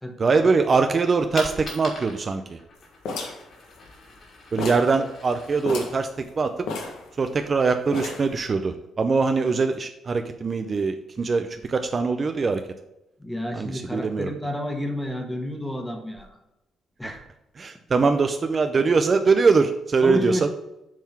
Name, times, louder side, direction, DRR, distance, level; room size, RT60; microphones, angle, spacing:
voice 1, 0.2-2.6 4.5-6.5 7.2-12.6 13.6-14.3 17.6-20.5, right 4 dB, 40° right, 7 dB, 0.5 m, -22 dB
Coin (dropping), 1.3-7.0, left 2 dB, 50° left, 2.7 m, -42 dB
sound 1, 3.1-4.3 4.6-5.0 5.3-5.4 5.6-6.0 6.7-7.5 7.9-8.4, left 3 dB, 80° left, 1.3 m, -32 dB
voice 2, 13.2-16.4 17.0-17.2 20.0-20.5, left 1 dB, 10° left, 4 dB, 1.4 m, -30 dB
7.4 x 3.7 x 5.8 m, 0.93 s
cardioid pair, 90°, 0 cm